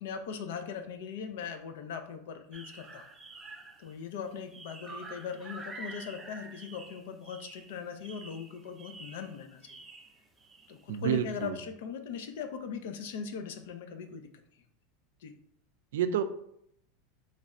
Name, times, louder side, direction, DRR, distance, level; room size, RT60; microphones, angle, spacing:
voice 1, 0.0-3.1 3.8-9.8 10.7-14.3 15.2-15.3, left 6 dB, 75° left, 7 dB, 0.5 m, -40 dB
sound 1, 2.5-4.0 4.3-10.8 11.3-11.5, right 3 dB, 15° right, 0.4 m, -48 dB
voice 2, 10.9-11.6 15.9-16.2, right 9 dB, 90° right, 10 dB, 0.3 m, -29 dB
3.3 x 2.4 x 4.1 m, 0.72 s
supercardioid pair, 145°, 0 cm